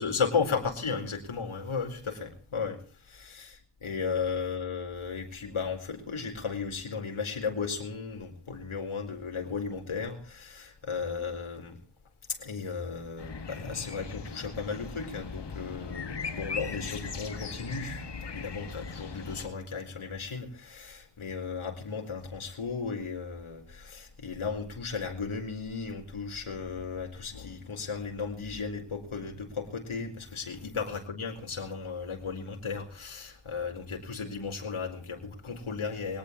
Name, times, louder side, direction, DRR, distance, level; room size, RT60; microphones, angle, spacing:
voice 1, 0.0-11.8 12.3-36.2, left 5 dB, 75° left, 3 dB, 4.4 m, -35 dB
sound 1, 13.2-19.5, left 5 dB, 55° left, 2.3 m, -39 dB
23.0 x 18.5 x 3.1 m, 0.39 s
wide cardioid pair, 130°, 49 cm